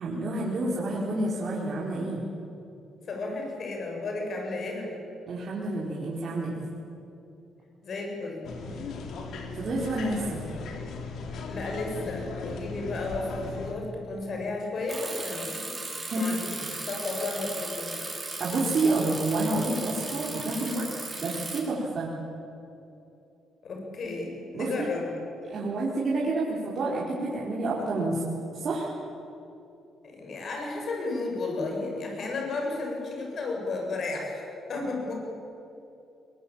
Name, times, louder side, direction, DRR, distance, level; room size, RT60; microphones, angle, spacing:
voice 1, 0.0-2.2 5.3-6.6 8.6-8.7 9.5-10.4 16.0-16.3 16.6-16.7 18.4-20.9 21.2-22.1 24.5-24.9 25.5-28.2 28.5-28.9, right 2 dB, 55° right, -5 dB, 4.6 m, -29 dB
voice 2, 3.1-5.0 7.8-8.4 11.5-15.9 16.1-16.6 16.9-18.1 23.6-25.1 30.0-34.4 34.7-35.2, left 3 dB, 55° left, 1 dB, 7.6 m, -33 dB
sound 1, 8.4-13.7, left 4 dB, 70° left, 3.3 m, -37 dB
Bicycle, 14.9-21.6, right 2 dB, 20° right, 6.0 m, -37 dB
22.5 x 22.0 x 8.9 m, 2.8 s
cardioid pair, 90°, 0 cm